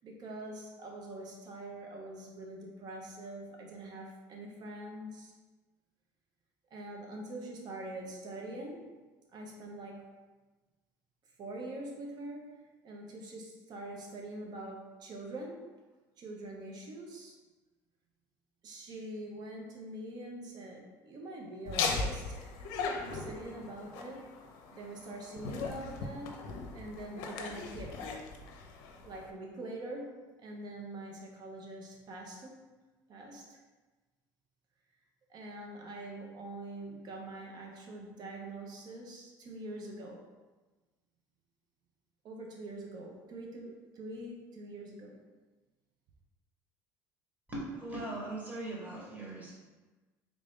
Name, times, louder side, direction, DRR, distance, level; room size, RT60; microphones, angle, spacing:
voice 1, 0.0-5.3 6.7-8.9 9.3-10.1 11.4-15.7 16.2-17.3 18.6-22.4 23.0-24.3 24.7-28.0 29.0-32.5 33.1-33.6 35.3-40.2 42.2-45.2, right 1 dB, 50° right, 0 dB, 0.9 m, -44 dB
Laughter, 21.7-29.3, left 4 dB, 75° left, 0.5 m, -38 dB
voice 2, 47.5-49.5, right 2 dB, 20° right, -5 dB, 1.4 m, -39 dB
3.6 x 2.5 x 3.6 m, 1.2 s
supercardioid pair, 90°, 9 cm